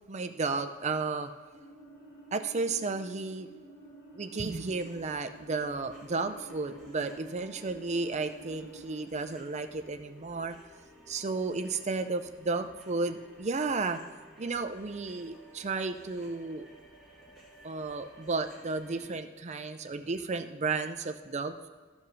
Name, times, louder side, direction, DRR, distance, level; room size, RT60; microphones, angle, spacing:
voice 1, 0.1-1.3 2.3-3.5 4.1-10.6 11.1-14.0 14.4-16.7 17.6-21.7, right 3 dB, 35° right, 8 dB, 0.6 m, -33 dB
sound 1, 1.5-9.3, right 2 dB, 50° left, 2.1 m, -51 dB
sound 2, 4.4-19.1, equal, ahead, 2.1 m, -55 dB
13.5 x 5.3 x 6.1 m, 1.5 s
head